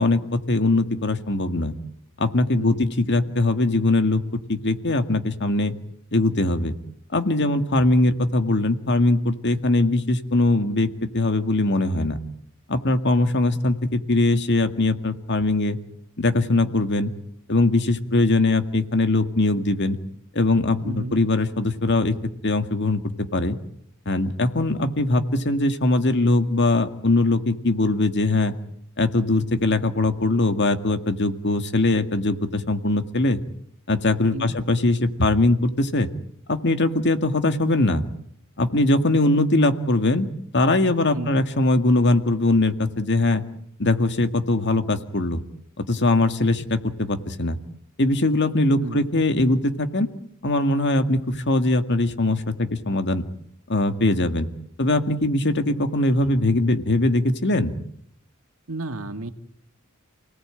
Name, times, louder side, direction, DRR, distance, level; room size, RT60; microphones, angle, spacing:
voice 1, 0.0-1.7 2.2-4.2 4.5-5.7 6.1-6.8 7.1-10.9 11.1-12.2 12.7-15.8 16.2-17.1 17.5-20.0 20.3-22.1 22.4-23.6 24.1-28.5 29.0-33.4 33.9-36.1 36.5-38.0 38.6-40.3 40.5-43.4 43.8-45.4 45.8-47.6 48.0-50.1 50.4-53.2 53.7-54.5 54.8-57.7, left 2 dB, 55° left, 9 dB, 2.0 m, -21 dB
voice 2, 20.8-21.2 34.3-34.5 41.1-41.4 48.8-49.1 58.7-59.3, right 2 dB, 75° right, 8 dB, 2.1 m, -32 dB
29.0 x 18.5 x 9.0 m, 0.71 s
head